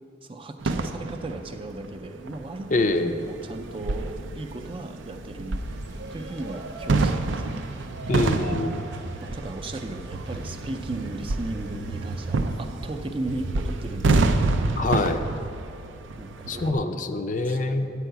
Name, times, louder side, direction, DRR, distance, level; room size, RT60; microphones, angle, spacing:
voice 1, 0.2-2.9 3.3-5.8 6.1-7.6 8.9-14.3 16.2-17.0 17.4-17.9, right 2 dB, 30° right, 6 dB, 0.5 m, -36 dB
sound 1, 0.6-1.9 2.3-16.7, right 3 dB, 90° right, 0.5 m, -28 dB
voice 2, 2.7-3.1 8.1-8.8 14.8-15.2 16.5-17.9, left 2 dB, 40° left, 8 dB, 0.4 m, -25 dB
sound 2, 5.6-12.6, right 2 dB, 65° right, 0.9 m, -42 dB
10.0 x 4.7 x 8.0 m, 2.6 s
head